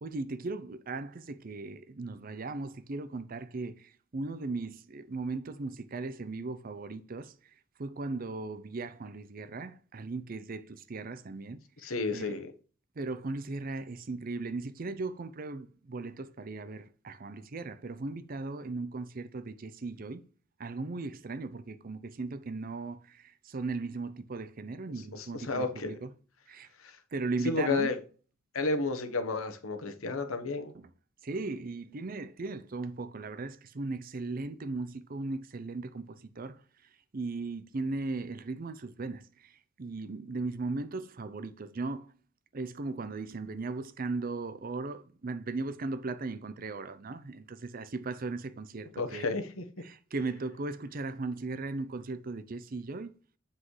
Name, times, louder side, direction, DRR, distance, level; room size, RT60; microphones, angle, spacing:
voice 1, 0.0-7.3 7.8-12.3 13.0-20.2 20.6-26.1 26.5-26.7 27.1-27.9 30.7-30.9 31.2-36.6 37.1-42.1 42.5-49.3 49.8-53.1, right 3 dB, 45° right, 0.5 m, -37 dB
voice 2, 11.8-12.5 25.2-25.9 26.8-27.0 27.4-28.0 28.5-30.7 49.0-49.6, left 3 dB, 80° left, 1.2 m, -31 dB
7.5 x 5.9 x 3.2 m
head